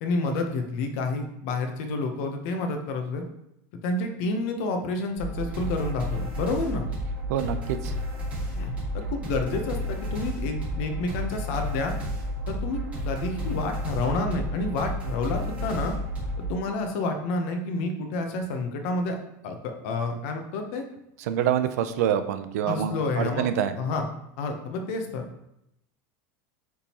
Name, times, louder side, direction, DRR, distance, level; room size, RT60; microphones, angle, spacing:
voice 1, 0.0-3.2 3.8-6.8 8.5-11.9 12.6-12.8 13.1-15.9 16.5-19.2 19.4-20.8 22.7-23.5 23.7-24.1 24.4-25.2, left 3 dB, 55° left, 5 dB, 0.9 m, -29 dB
sound 1, 5.2-16.5, equal, 15° right, 2.2 m, -31 dB
voice 2, 7.3-7.9 21.3-23.7, right 9 dB, 80° right, 10 dB, 0.5 m, -26 dB
8.4 x 3.7 x 3.0 m, 0.81 s
supercardioid pair, 175°, 9 cm